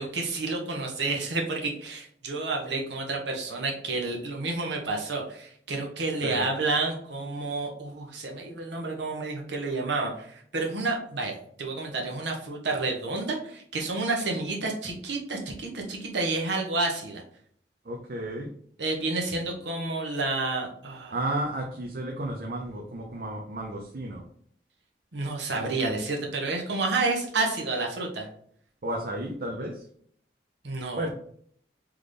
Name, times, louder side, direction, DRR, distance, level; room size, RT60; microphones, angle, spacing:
voice 1, 0.0-17.2 18.8-21.1 25.1-28.3 30.6-31.1, right 3 dB, 85° right, 0 dB, 1.1 m, -30 dB
voice 2, 6.2-6.5 17.8-18.5 19.5-19.6 21.1-24.2 28.8-29.8 30.9-31.1, right 1 dB, 55° right, 0 dB, 0.6 m, -33 dB
3.8 x 3.6 x 3.3 m, 0.63 s
head